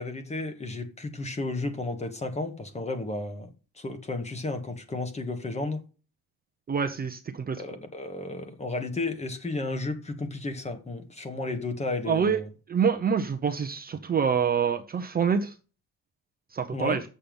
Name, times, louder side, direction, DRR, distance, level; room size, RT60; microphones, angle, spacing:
voice 1, 0.0-3.5 3.8-5.8 7.6-12.5 16.7-17.0, left 2 dB, 20° left, 1.4 m, -33 dB
voice 2, 6.7-7.6 12.1-12.4 12.7-15.5 16.5-17.0, right 6 dB, 25° right, 0.7 m, -26 dB
7.6 x 7.0 x 5.2 m
cardioid pair, 150°, 34 cm